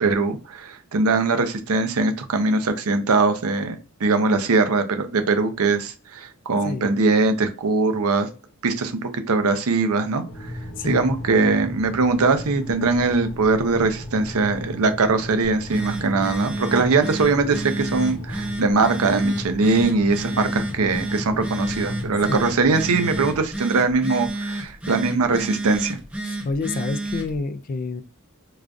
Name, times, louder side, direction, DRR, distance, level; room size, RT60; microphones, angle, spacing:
voice 1, 0.0-8.3 8.6-10.5 10.8-26.0, right 3 dB, 75° right, 0.6 m, -21 dB
sound 1, 10.3-23.4, left 1 dB, 65° left, 0.7 m, -35 dB
voice 2, 10.8-11.1 22.3-22.5 26.2-28.0, left 3 dB, 40° left, 0.3 m, -28 dB
Telephone, 15.4-27.4, right 1 dB, 5° right, 0.6 m, -31 dB
4.8 x 2.3 x 2.5 m
head